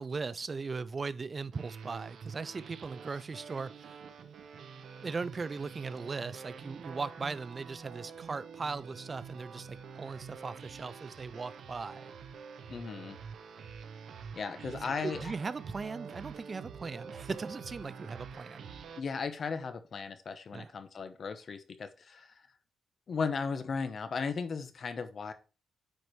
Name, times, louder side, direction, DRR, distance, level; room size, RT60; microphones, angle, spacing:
voice 1, 0.0-4.0 5.0-12.1 14.8-18.7 20.5-20.7, right 4 dB, 35° right, 0.3 m, -38 dB
sound 1, 1.5-19.0, right 6 dB, 70° right, 0.8 m, -47 dB
voice 2, 12.7-13.2 14.4-15.3 19.0-22.4 23.1-25.3, left 5 dB, 50° left, 0.9 m, -36 dB
9.3 x 4.7 x 3.1 m
cardioid pair, 100°, 0 cm